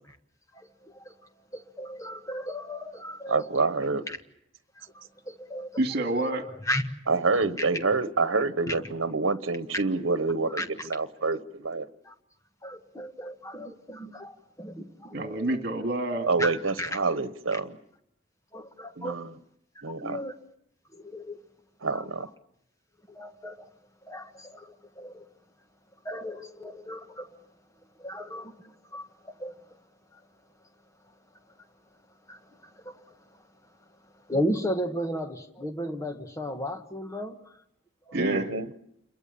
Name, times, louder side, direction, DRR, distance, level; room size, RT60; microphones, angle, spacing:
voice 1, 0.5-1.1 1.5-3.5 4.1-4.2 4.7-5.8 6.6-6.9 7.3-7.6 8.7-8.8 9.7-9.8 10.5-10.9 12.0-12.1 12.6-15.2 15.5-15.6 16.4-17.0 17.5-17.6 18.5-19.2 19.7-20.4 20.9-21.4 21.9-22.2 23.1-23.7 24.0-25.3 26.0-27.4 28.0-29.8 30.1-30.2 32.3-33.5 34.1-37.6 38.1-38.2, equal, 15° left, 1.5 m, -35 dB
voice 2, 3.3-4.0 7.1-11.9 16.3-17.8 19.0-19.3 19.8-20.2 21.8-22.3 38.1-38.7, right 3 dB, 85° right, 1.2 m, -27 dB
voice 3, 5.8-6.4 15.1-16.3 38.1-38.5, right 1 dB, 55° right, 2.3 m, -28 dB
29.0 x 22.5 x 7.1 m
head